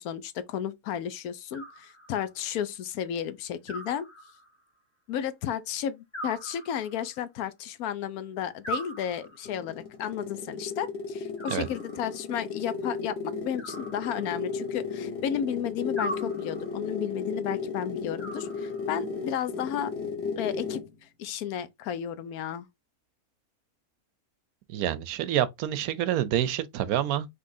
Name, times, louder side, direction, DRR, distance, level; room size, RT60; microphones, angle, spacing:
voice 1, 0.0-4.1 5.1-19.9 20.4-22.7, left 9 dB, 80° left, 1.1 m, -33 dB
Animal, 1.5-2.4 3.7-4.7 6.1-7.2 8.6-9.6 11.4-12.3 13.6-14.7 16.0-16.9 18.2-19.1, right 1 dB, 20° left, 1.1 m, -40 dB
sound 1, 9.2-20.9, left 5 dB, 50° left, 1.4 m, -35 dB
voice 2, 24.7-27.3, right 11 dB, 80° right, 1.1 m, -27 dB
5.2 x 3.4 x 2.7 m
omnidirectional pair, 1.6 m